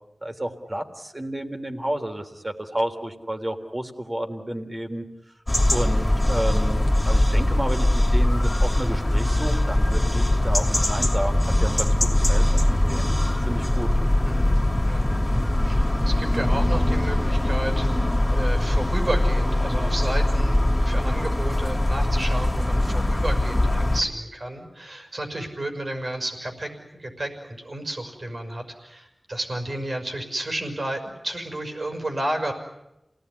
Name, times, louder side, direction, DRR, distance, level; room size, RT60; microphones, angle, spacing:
voice 1, 0.2-5.1 5.7-13.9, right 1 dB, 35° right, 5 dB, 3.6 m, -31 dB
sound 1, 5.5-24.0, left 1 dB, 20° left, 2.6 m, -21 dB
voice 2, 14.3-32.5, right 1 dB, 60° right, 4 dB, 5.8 m, -32 dB
28.5 x 18.5 x 9.9 m, 0.89 s
wide cardioid pair, 45°, 0 cm